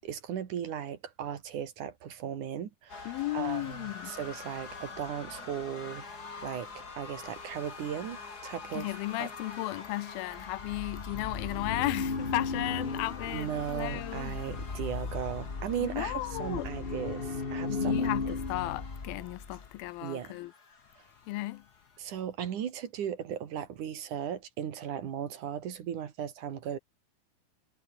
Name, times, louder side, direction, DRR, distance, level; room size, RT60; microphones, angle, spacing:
voice 1, 0.0-6.1 6.4-8.9 9.2-9.3 13.3-18.3 20.0-20.4 22.0-26.8, right 9 dB, 60° right, 3.2 m, -37 dB
sound 1, 2.9-22.0, left 4 dB, 25° left, 3.0 m, -47 dB
voice 2, 3.1-4.1 8.7-14.4 15.8-16.7 17.7-20.5 21.3-21.6, left 18 dB, 85° left, 2.5 m, -35 dB
sound 2, 10.3-19.7, left 4 dB, 50° left, 0.6 m, -35 dB
omnidirectional pair, 4.3 m